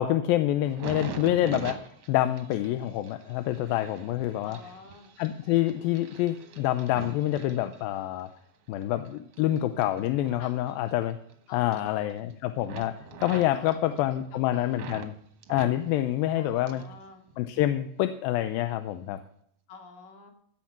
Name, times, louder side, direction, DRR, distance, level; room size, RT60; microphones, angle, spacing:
voice 1, 0.0-1.8 2.1-4.6 5.2-8.3 8.7-11.2 11.5-15.1 15.5-16.8 17.4-19.2, left 13 dB, 80° left, 10 dB, 2.3 m, -27 dB
sound 1, 0.6-8.3 8.7-11.3 11.6-12.3 12.6-15.1 15.4-17.0 17.3-18.0 18.6-18.8, right 5 dB, 60° right, 1.7 m, -44 dB
voice 2, 4.4-5.1 10.4-10.7 11.5-12.1 13.3-13.8 14.1-14.8 16.4-17.2 19.7-20.3, left 4 dB, 65° left, 2 dB, 3.8 m, -48 dB
15.5 x 7.4 x 5.9 m, 0.66 s
omnidirectional pair, 4.3 m